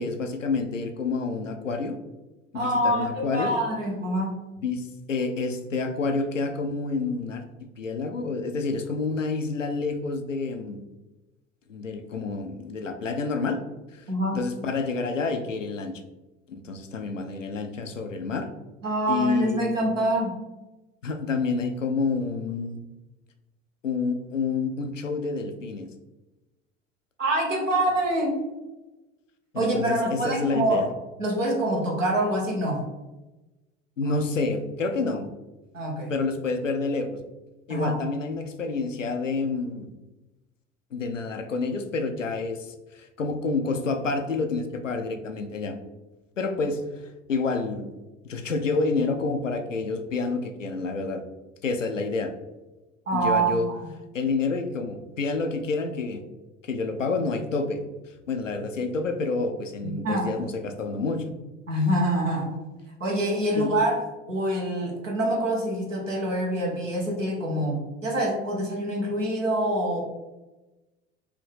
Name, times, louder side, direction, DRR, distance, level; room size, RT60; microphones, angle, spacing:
voice 1, 0.0-2.0 2.5-3.5 4.6-7.4 7.8-10.8 11.7-13.6 13.9-14.0 14.3-15.9 16.5-18.5 19.1-19.6 21.0-22.8 23.8-25.9 29.5-30.9 34.0-35.3 36.1-37.2 37.7-39.9 40.9-45.8 46.4-46.8 47.3-47.9 48.2-51.2 51.6-52.3 53.1-53.7 54.1-56.2 56.6-57.8 58.3-61.2 63.6-63.7, left 4 dB, 90° left, 6 dB, 0.5 m, -28 dB
voice 2, 2.5-4.4 14.1-14.4 18.8-20.3 27.2-28.4 29.6-30.8 31.2-32.8 34.1-34.2 35.7-36.1 37.7-38.0 53.1-53.9 59.8-60.3 61.7-62.6 63.0-64.0 64.3-70.0, right 1 dB, 85° right, -1 dB, 1.1 m, -25 dB
4.9 x 2.7 x 3.3 m, 1.1 s
figure-of-eight pair, 70°, 37 cm